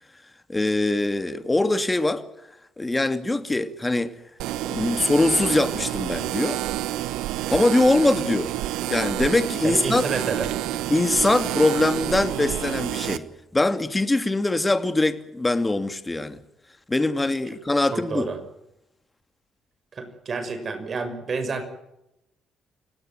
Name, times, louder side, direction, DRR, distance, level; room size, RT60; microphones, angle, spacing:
voice 1, 0.5-2.2 2.8-4.1 4.7-6.6 7.5-8.5 8.9-10.0 10.9-13.3 13.5-16.4 16.9-18.3, left 2 dB, 20° left, 2.5 m, -22 dB
sound 1, 4.4-13.2, right 14 dB, 75° right, 1.2 m, -28 dB
voice 2, 9.6-10.8 17.9-18.4 19.9-21.7, right 4 dB, 50° right, 6.0 m, -29 dB
29.5 x 18.0 x 7.8 m
hypercardioid pair, 50°, 0 cm